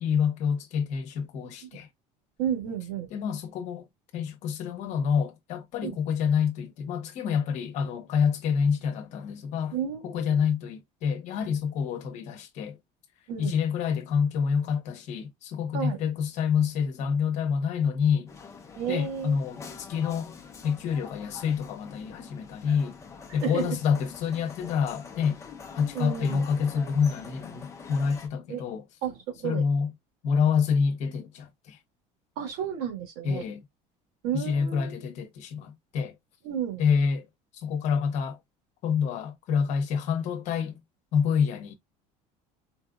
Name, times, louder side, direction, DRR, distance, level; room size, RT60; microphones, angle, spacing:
voice 1, 0.0-1.9 3.1-3.8 4.1-9.7 10.0-12.8 13.4-18.3 18.9-20.3 20.6-23.0 23.3-25.4 25.7-28.8 29.4-29.9 30.2-31.8 33.2-33.6 34.3-36.1 36.8-37.3 37.5-38.4 38.8-40.8 41.1-41.7, left 6 dB, 50° left, 1.0 m, -27 dB
voice 2, 2.4-3.1 5.8-5.9 9.7-10.4 13.3-13.5 15.7-16.0 18.7-19.4 23.4-23.7 25.9-26.4 28.5-28.6 29.0-29.6 32.4-33.4 34.2-34.9 36.4-36.8, right 8 dB, 85° right, 1.7 m, -32 dB
sound 1, 18.3-28.3, left 5 dB, 20° left, 0.7 m, -45 dB
4.4 x 2.4 x 2.3 m
cardioid pair, 170°, 15 cm